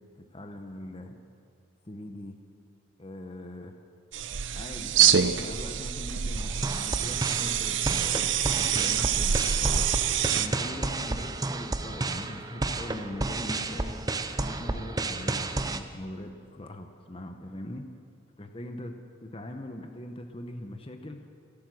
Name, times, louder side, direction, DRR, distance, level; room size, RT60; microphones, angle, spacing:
voice 1, 0.2-1.2 1.8-2.4 3.0-3.7 4.5-9.9 10.3-14.0 14.3-17.9 18.4-19.0 19.2-21.3, left 1 dB, 25° left, 5 dB, 0.8 m, -41 dB
sound 1, 4.1-10.5, right 9 dB, 60° right, 0.6 m, -26 dB
sound 2, 6.3-15.8, right 2 dB, 15° right, 0.5 m, -32 dB
26.0 x 8.7 x 6.3 m, 2.4 s
head